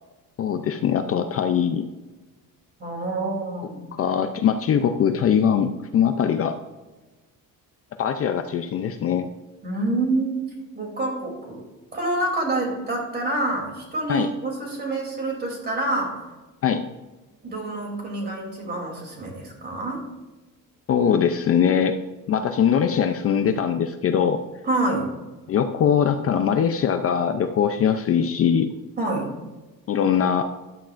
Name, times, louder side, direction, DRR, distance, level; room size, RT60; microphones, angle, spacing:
voice 1, 0.4-1.9 4.0-6.6 8.0-9.3 14.1-14.3 16.6-16.8 20.9-22.0 22.3-24.4 25.5-28.7 29.9-30.5, left 8 dB, 40° left, 7 dB, 0.5 m, -21 dB
voice 2, 2.8-3.8 9.6-10.4 10.7-11.6 11.9-16.2 17.4-20.0 24.7-25.1 29.0-29.3, right 2 dB, 25° right, 0 dB, 3.0 m, -27 dB
13.0 x 11.5 x 2.5 m, 1.2 s
cardioid pair, 170°, 36 cm